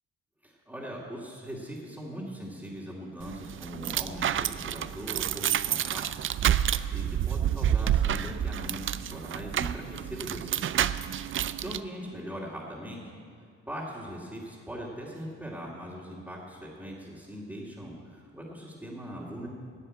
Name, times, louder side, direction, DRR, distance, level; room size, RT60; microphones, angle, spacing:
voice 1, 0.4-6.0 6.4-10.6 11.5-13.1 13.4-19.5, equal, 5° right, -7 dB, 2.4 m, -40 dB
sound 1, 3.2-11.8, right 10 dB, 45° right, 0.4 m, -29 dB
11.0 x 7.8 x 8.8 m, 2.1 s
cardioid pair, 90°, 30 cm